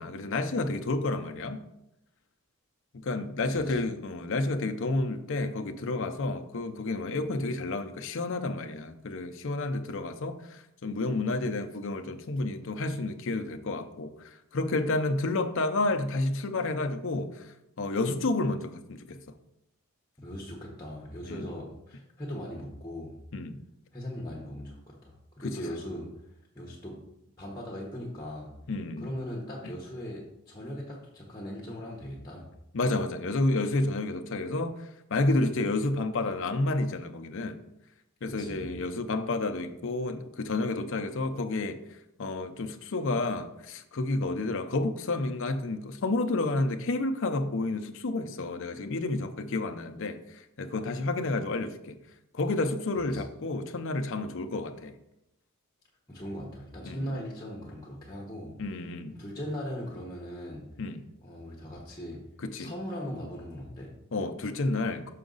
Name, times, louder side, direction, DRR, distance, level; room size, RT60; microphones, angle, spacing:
voice 1, 0.0-1.6 3.0-19.2 21.3-21.5 23.3-23.6 25.4-25.5 28.7-29.1 32.7-37.6 38.2-41.8 42.2-52.0 52.3-54.9 56.8-57.1 58.6-59.1 60.8-61.0 62.4-62.7 64.1-65.1, left 2 dB, 55° left, 0.6 m, -30 dB
voice 2, 3.5-3.8 20.2-23.2 23.9-26.1 26.5-27.0 27.4-28.5 29.0-32.5 38.2-38.7 53.0-53.2 56.1-58.6 59.1-60.6 61.2-62.2 62.6-63.9, equal, 15° left, 1.0 m, -39 dB
6.1 x 5.8 x 3.9 m
head